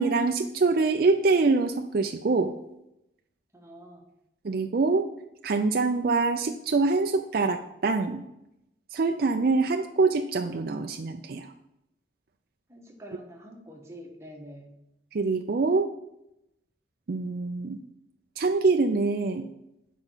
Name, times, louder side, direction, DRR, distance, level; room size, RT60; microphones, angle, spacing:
voice 1, 0.0-2.5 4.4-5.1 5.4-8.2 8.9-11.5 15.1-15.9 17.1-17.8 18.4-19.5, right 3 dB, 50° right, 5 dB, 0.4 m, -24 dB
voice 2, 3.5-4.1 12.7-14.7, equal, 15° right, 0 dB, 1.4 m, -46 dB
8.0 x 5.1 x 5.7 m, 0.85 s
head